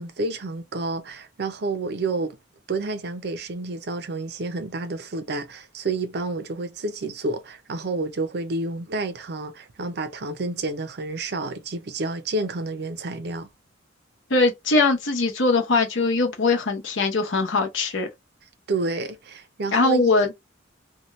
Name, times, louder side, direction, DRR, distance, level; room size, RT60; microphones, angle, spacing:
voice 1, 0.0-2.4 2.7-13.5 18.7-20.0, right 3 dB, 55° right, 0.6 m, -29 dB
voice 2, 14.3-18.1 19.7-20.3, left 3 dB, 75° left, 0.9 m, -21 dB
2.8 x 2.3 x 3.0 m
head